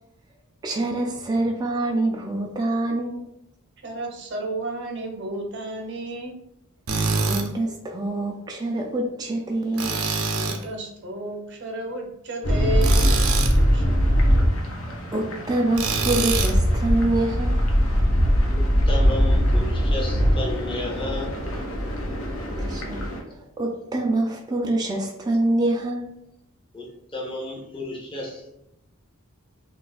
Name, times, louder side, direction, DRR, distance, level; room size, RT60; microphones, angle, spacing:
voice 1, 0.6-3.3 7.2-10.0 14.8-17.6 22.6-23.0 23.3-26.1, right 2 dB, 20° right, 0 dB, 0.3 m, -25 dB
voice 2, 3.8-6.3 10.3-13.8, right 2 dB, 55° right, 2 dB, 0.8 m, -32 dB
Tools, 6.9-7.5 9.8-10.6 12.8-13.6 15.8-16.6, right 4 dB, 90° right, 0.5 m, -25 dB
sound 1, 12.4-23.2, equal, 65° left, 0.6 m, -21 dB
voice 3, 18.5-21.4 26.7-28.5, left 2 dB, 25° left, -3 dB, 0.7 m, -33 dB
2.7 x 2.4 x 3.9 m, 0.80 s
head